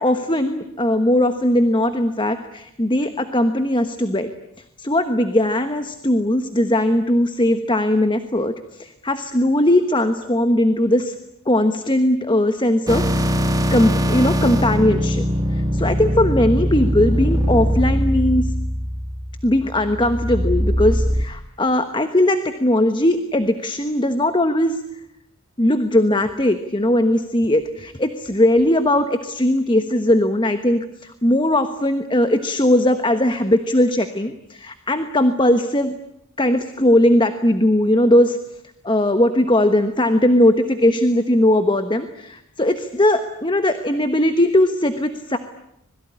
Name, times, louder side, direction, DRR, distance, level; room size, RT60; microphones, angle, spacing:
voice 1, 0.0-4.3 4.8-11.1 11.4-13.0 13.7-15.2 15.5-18.5 19.4-25.0 25.6-35.9 36.4-38.4 38.8-45.4, left 1 dB, 20° left, 9 dB, 1.2 m, -19 dB
sound 1, 12.9-21.2, equal, 15° right, 1.8 m, -21 dB
26.5 x 21.5 x 10.0 m, 0.78 s
head